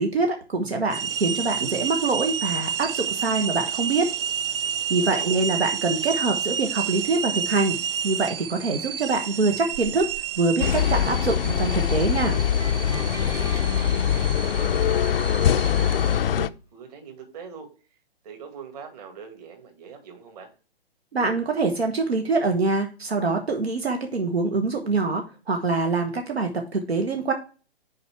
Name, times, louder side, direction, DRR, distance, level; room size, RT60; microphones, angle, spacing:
voice 1, 0.0-4.1 4.9-7.8 8.0-10.1 10.4-12.4 21.1-27.3, right 3 dB, 80° right, 4 dB, 1.3 m, -24 dB
sound 1, 0.9-16.2, right 8 dB, 60° right, 0.5 m, -30 dB
voice 2, 5.0-5.5 13.2-13.8 14.4-18.0 18.2-20.5, right 6 dB, 40° right, 5 dB, 2.2 m, -43 dB
sound 2, 10.6-16.5, left 9 dB, 65° left, 0.5 m, -23 dB
sound 3, 12.3-15.5, right 1 dB, 10° right, 0.8 m, -41 dB
6.4 x 4.9 x 4.4 m, 0.35 s
figure-of-eight pair, 130°, 31 cm